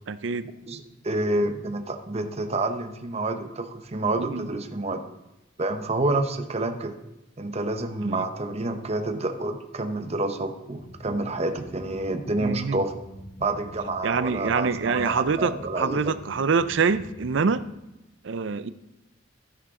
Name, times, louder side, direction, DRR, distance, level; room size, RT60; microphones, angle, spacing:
voice 1, 0.1-0.5 4.2-4.5 8.0-8.3 12.4-12.8 14.0-17.7 18.2-18.7, right 5 dB, 70° right, 14 dB, 0.5 m, -25 dB
voice 2, 0.7-5.0 5.6-6.9 7.4-12.9 13.4-16.1, right 2 dB, 35° right, 6 dB, 0.9 m, -28 dB
sound 1, 10.7-17.6, equal, 75° left, 4.5 m, -45 dB
13.0 x 10.0 x 3.7 m, 0.95 s
head